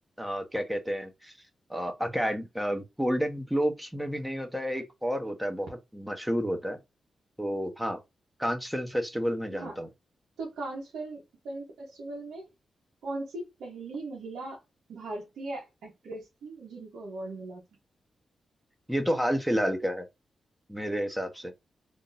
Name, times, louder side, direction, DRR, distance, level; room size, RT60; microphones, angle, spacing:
voice 1, 0.2-1.3 1.7-6.8 7.4-8.0 8.4-9.9 18.9-20.0 20.7-21.5, equal, 5° right, 1.1 m, -30 dB
voice 2, 10.4-12.4 13.0-14.6 14.9-17.6, right 2 dB, 85° right, 1.2 m, -39 dB
3.5 x 2.9 x 2.7 m
cardioid pair, 55°, 0 cm